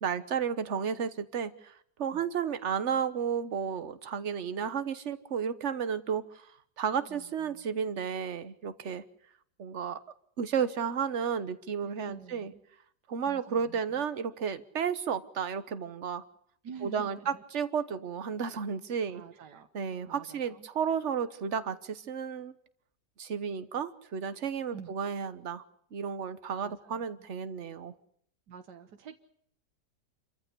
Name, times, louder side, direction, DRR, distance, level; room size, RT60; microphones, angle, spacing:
voice 1, 0.0-6.5 6.8-9.0 9.6-10.0 10.4-12.5 13.1-16.2 16.8-19.2 19.7-22.5 23.2-25.6 25.9-27.9, right 7 dB, 45° right, 12 dB, 1.4 m, -32 dB
voice 2, 7.1-7.7 12.0-12.6 13.3-13.8 16.6-17.4 19.1-19.7 20.1-20.7 24.7-25.0 26.6-27.3 28.5-29.2, right 6 dB, 80° right, 6 dB, 1.8 m, -48 dB
28.0 x 14.5 x 8.4 m, 0.68 s
omnidirectional pair, 1.8 m